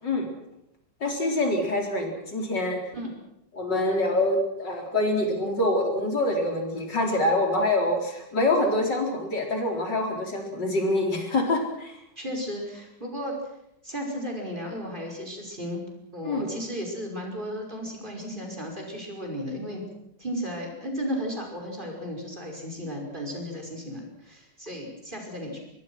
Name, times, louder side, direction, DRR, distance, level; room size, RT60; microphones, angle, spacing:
voice 1, 1.0-2.8 3.5-12.0 16.2-16.5, left 1 dB, 80° left, 2 dB, 4.9 m, -25 dB
voice 2, 12.2-13.3 13.8-15.8 16.1-19.8 20.2-25.6, equal, 25° right, 1 dB, 5.7 m, -34 dB
25.0 x 22.0 x 6.2 m, 0.81 s
omnidirectional pair, 1.9 m